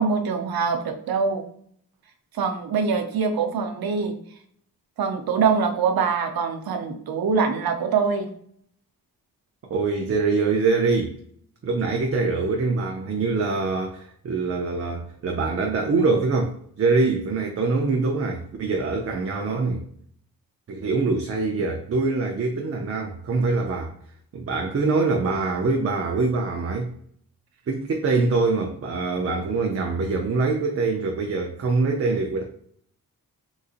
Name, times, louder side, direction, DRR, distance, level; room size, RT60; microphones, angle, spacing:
voice 1, 0.0-1.5 2.4-4.1 5.0-8.3, right 5 dB, 80° right, 0.7 m, -24 dB
voice 2, 9.7-11.2 11.6-19.8 20.7-23.9 24.3-26.9 27.7-32.4, right 3 dB, 40° right, 0.5 m, -24 dB
3.9 x 2.6 x 2.4 m
cardioid pair, 95°, 36 cm